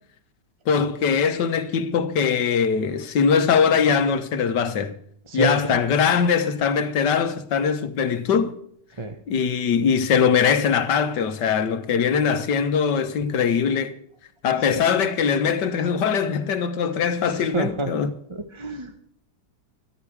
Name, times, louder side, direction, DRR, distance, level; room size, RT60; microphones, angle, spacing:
voice 1, 0.7-5.0 5.3-8.6 9.3-14.0 14.4-18.1, left 6 dB, 70° left, 1.8 m, -21 dB
voice 2, 5.3-5.8 9.0-9.1 14.7-14.8 17.5-17.9 18.3-19.0, right 2 dB, 20° right, 1.1 m, -28 dB
13.5 x 13.0 x 4.7 m
omnidirectional pair, 1.9 m